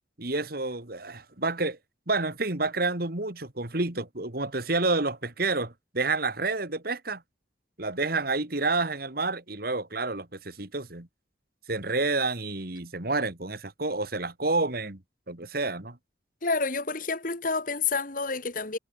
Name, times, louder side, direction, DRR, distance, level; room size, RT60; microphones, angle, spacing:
voice 1, 0.2-1.8 2.1-7.2 7.8-11.1 11.7-15.0 15.3-16.0, right 3 dB, 55° right, 2.5 m, -29 dB
voice 2, 16.4-18.8, left 4 dB, 45° left, 2.1 m, -29 dB
head